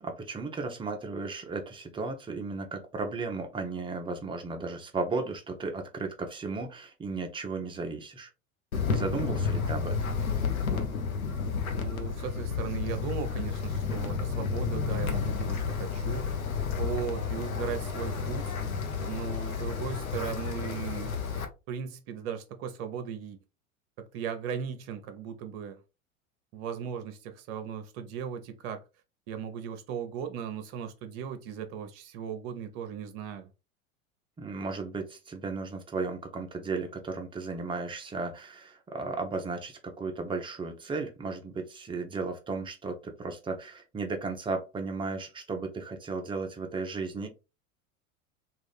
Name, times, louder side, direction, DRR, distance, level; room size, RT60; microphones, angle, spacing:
voice 1, 0.0-8.3 8.9-10.1 34.4-47.3, right 4 dB, 10° right, 0.6 m, -35 dB
Wind, 8.7-21.4, left 5 dB, 80° left, 0.8 m, -31 dB
voice 2, 11.7-16.5 16.8-18.6 19.0-21.1 21.7-23.4 24.0-25.8 26.5-28.8 29.3-33.5, right 8 dB, 45° right, 0.8 m, -37 dB
3.6 x 2.4 x 3.4 m
figure-of-eight pair, 80°, 41 cm